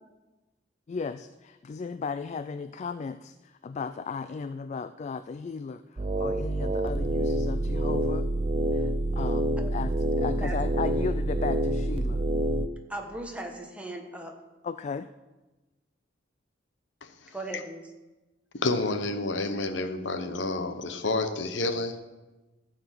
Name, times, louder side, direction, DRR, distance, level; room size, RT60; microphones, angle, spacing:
voice 1, 0.9-8.3 8.7-12.2 14.6-15.1, left 5 dB, 40° left, 12 dB, 0.3 m, -35 dB
sound 1, 6.0-12.7, right 1 dB, 30° right, 0.5 m, -27 dB
voice 2, 10.1-11.1 12.9-14.3 17.3-17.8, right 1 dB, 5° right, 2 dB, 1.3 m, -38 dB
voice 3, 17.0-17.6 18.5-22.1, left 2 dB, 70° left, 9 dB, 0.9 m, -30 dB
14.0 x 5.0 x 7.5 m, 1.1 s
head